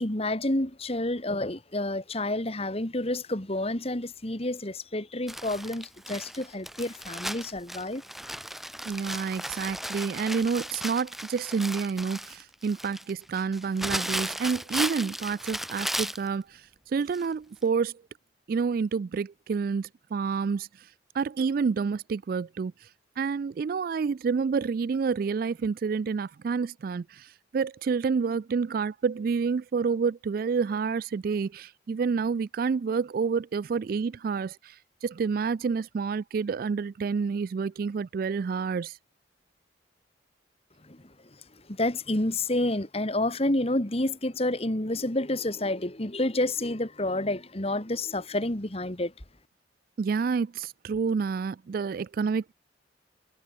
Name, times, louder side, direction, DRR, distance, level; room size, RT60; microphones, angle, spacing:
voice 1, 0.0-8.0 40.8-41.0 41.7-49.1, left 1 dB, 30° left, 2.2 m, -29 dB
Crumpling crinkling, 5.3-16.3 17.1-17.3 17.6-17.7, equal, ahead, 3.1 m, -35 dB
voice 2, 8.9-16.4 16.9-17.9 18.5-20.7 21.1-22.7 23.2-27.3 27.5-34.7 35.0-38.9 50.0-52.5, right 5 dB, 50° right, 0.3 m, -28 dB
head